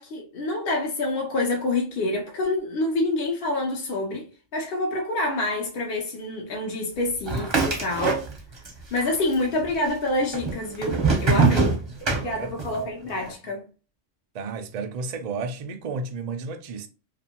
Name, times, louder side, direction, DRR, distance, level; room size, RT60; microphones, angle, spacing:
voice 1, 0.0-4.3 4.5-8.2 8.9-11.7 12.1-13.6, left 2 dB, 60° left, 0.7 m, -27 dB
sound 1, 7.3-8.7 9.0-9.7 10.3-12.8, right 4 dB, 30° right, 0.5 m, -23 dB
voice 2, 11.3-11.6 12.2-12.5 13.3-13.4 14.3-16.9, right 4 dB, 85° right, 0.3 m, -32 dB
2.5 x 2.4 x 2.7 m
omnidirectional pair, 1.2 m